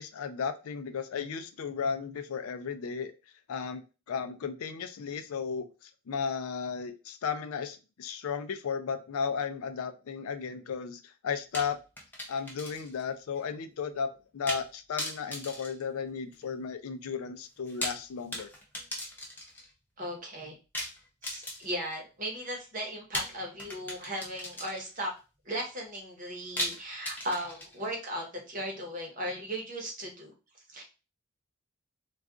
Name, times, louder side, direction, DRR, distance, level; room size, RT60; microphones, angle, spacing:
voice 1, 0.0-3.1 3.5-3.8 4.1-5.7 6.1-11.8 12.3-18.5, left 6 dB, 85° left, 9 dB, 0.4 m, -34 dB
sound 1, 11.5-13.1 13.3-13.4 14.5-14.7 15.0-16.5 17.6-19.7 20.7-21.9 23.1-25.0 26.6-27.9, left 1 dB, 10° left, 0.5 m, -38 dB
voice 2, 20.0-20.5 21.2-25.1 25.5-30.3 30.7-30.8, equal, 40° right, 0 dB, 0.9 m, -37 dB
2.3 x 2.3 x 3.6 m, 0.31 s
head